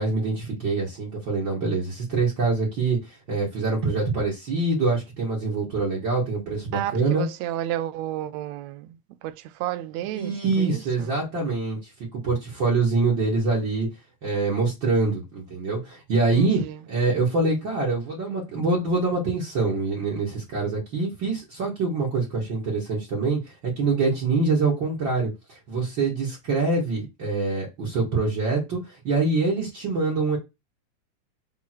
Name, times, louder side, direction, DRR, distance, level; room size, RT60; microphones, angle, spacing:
voice 1, 0.0-3.0 3.3-7.3 10.1-11.8 12.2-13.9 14.2-16.6 16.9-23.4 23.8-25.3 25.7-28.8 29.0-30.4, right 3 dB, 45° right, 2.2 m, -24 dB
voice 2, 6.7-11.2 16.3-16.8, right 13 dB, 80° right, 1.8 m, -32 dB
6.2 x 3.8 x 4.4 m
omnidirectional pair, 3.3 m